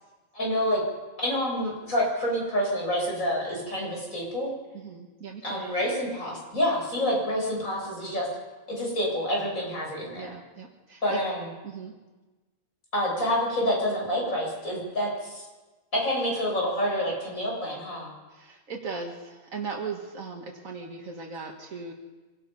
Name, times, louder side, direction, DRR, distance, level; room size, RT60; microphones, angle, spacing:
voice 1, 0.3-0.8 1.2-4.5 5.4-8.3 8.7-10.3 11.0-11.4 12.9-15.5 15.9-18.1, equal, 90° left, -2 dB, 8.5 m, -28 dB
voice 2, 4.7-5.6 10.1-11.2 11.6-12.0 18.3-21.9, right 5 dB, 90° right, 0 dB, 2.2 m, -38 dB
26.0 x 18.0 x 5.5 m, 1.2 s
omnidirectional pair, 1.4 m